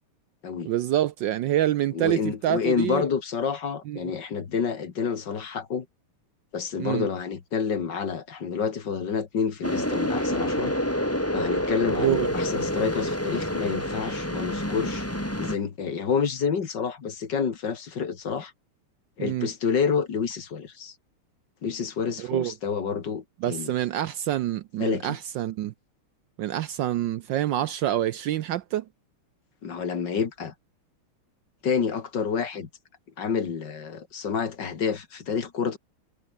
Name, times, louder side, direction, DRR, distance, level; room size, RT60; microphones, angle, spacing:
voice 1, 0.7-3.0 3.9-4.1 6.8-7.1 12.0-12.3 19.2-19.5 22.2-22.5 23.4-25.7 26.4-28.8, right 12 dB, 70° right, 1.2 m, -26 dB
voice 2, 1.9-5.9 6.5-10.7 11.3-15.1 15.4-18.5 19.2-21.0 21.6-23.7 24.8-25.2 29.6-30.5 31.6-32.7 33.2-35.8, left 6 dB, 55° left, 2.4 m, -28 dB
sound 1, 9.6-15.6, equal, 5° left, 4.0 m, -28 dB
omnidirectional pair, 2.4 m